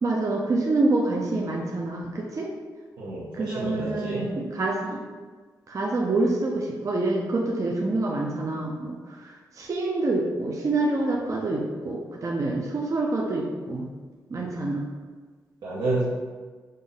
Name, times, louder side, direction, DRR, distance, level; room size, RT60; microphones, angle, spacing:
voice 1, 0.0-2.5 3.3-5.0 5.7-13.8 14.3-14.9, right 2 dB, 45° right, -2 dB, 0.6 m, -27 dB
voice 2, 3.0-4.3 14.4-14.5 15.6-16.0, right 2 dB, 80° right, -8 dB, 0.8 m, -29 dB
5.2 x 2.1 x 3.9 m, 1.4 s
cardioid pair, 65°, 7 cm